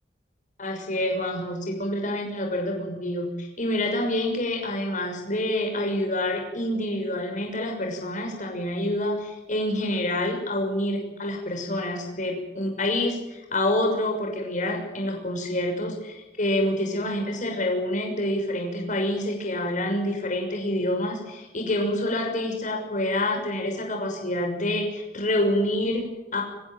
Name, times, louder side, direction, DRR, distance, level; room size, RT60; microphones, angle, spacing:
voice 1, 0.6-26.4, left 1 dB, 45° left, 2 dB, 6.2 m, -27 dB
25.0 x 16.5 x 9.3 m, 1.1 s
head